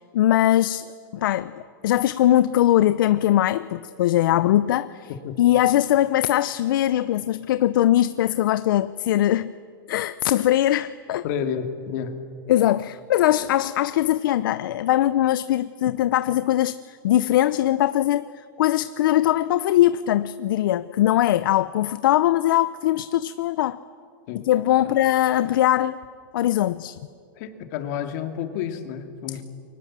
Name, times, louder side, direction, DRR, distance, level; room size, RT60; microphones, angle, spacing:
voice 1, 0.0-1.5 1.8-5.1 5.4-9.5 9.9-11.2 12.5-23.8 24.5-26.0 26.3-27.0, left 13 dB, 70° left, 14 dB, 0.7 m, -21 dB
voice 2, 11.2-12.1 24.3-24.5 24.8-24.9 27.4-29.4, left 8 dB, 50° left, 6 dB, 2.5 m, -30 dB
29.0 x 24.0 x 7.5 m, 2.3 s
supercardioid pair, 150°, 12 cm